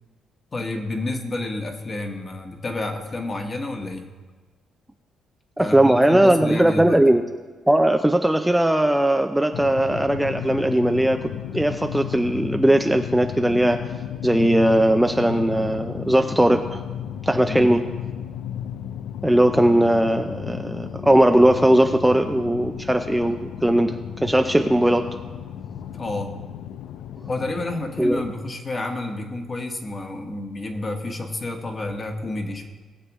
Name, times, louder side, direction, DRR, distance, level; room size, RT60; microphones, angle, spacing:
voice 1, 0.5-4.1 5.6-7.0 17.5-17.7 25.9-26.3 27.3-32.7, left 2 dB, 35° left, 3 dB, 1.6 m, -30 dB
voice 2, 5.6-7.2 7.7-11.2 11.5-13.8 14.2-16.8 17.2-17.8 19.2-25.0 28.0-28.2, right 1 dB, 5° right, 6 dB, 0.5 m, -19 dB
sound 1, 9.5-28.4, left 9 dB, 80° left, 0.5 m, -34 dB
20.0 x 7.5 x 3.1 m, 1.4 s
cardioid pair, 90°, 0 cm